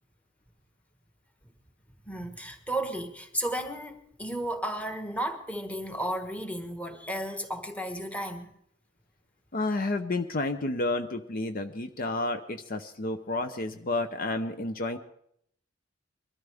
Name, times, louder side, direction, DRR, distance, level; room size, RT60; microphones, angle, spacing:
voice 1, 2.1-8.5, right 1 dB, 5° left, 1.3 m, -33 dB
voice 2, 9.5-15.0, left 2 dB, 45° left, 0.7 m, -30 dB
22.5 x 13.0 x 3.5 m
head